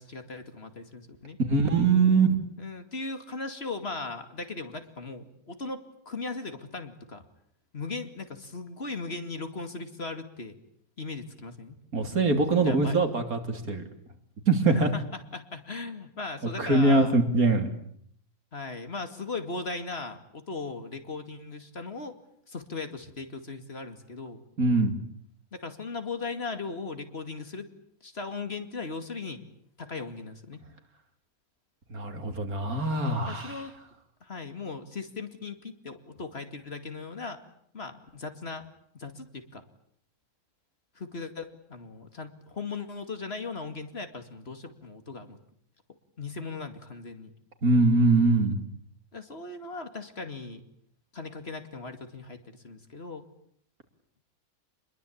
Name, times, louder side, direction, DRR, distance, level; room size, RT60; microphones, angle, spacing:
voice 1, 0.0-1.4 2.6-7.2 7.7-10.6 11.0-11.8 12.5-13.0 14.7-17.1 18.5-22.2 22.5-24.4 25.5-27.7 28.0-29.4 29.8-30.6 33.3-33.7 34.2-37.4 37.7-38.6 38.9-39.6 41.0-45.4 46.2-47.3 49.1-50.6 51.1-53.2, left 3 dB, 45° left, 8 dB, 2.6 m, -38 dB
voice 2, 1.5-2.4 11.9-13.8 14.5-14.9 16.6-17.7 24.6-25.0 31.9-33.6 47.6-48.6, right 3 dB, 85° right, 6 dB, 3.6 m, -23 dB
27.5 x 21.5 x 8.7 m, 0.67 s
omnidirectional pair, 1.5 m